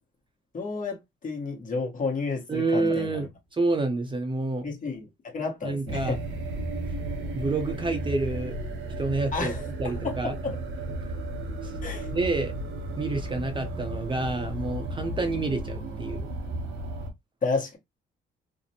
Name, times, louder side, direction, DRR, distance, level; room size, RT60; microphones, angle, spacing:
voice 1, 0.5-3.3 4.6-5.1 5.3-6.2 9.3-10.6 11.8-12.1 17.4-17.8, left 4 dB, 40° left, 1.1 m, -31 dB
voice 2, 2.5-4.7 5.6-6.2 7.3-8.5 9.0-9.5 9.8-10.3 11.6-11.7 12.1-12.6 13.0-16.2, right 3 dB, 25° right, 0.6 m, -28 dB
sound 1, 5.9-17.1, right 2 dB, 75° right, 0.8 m, -34 dB
2.5 x 2.0 x 2.8 m
cardioid pair, 90°, 20 cm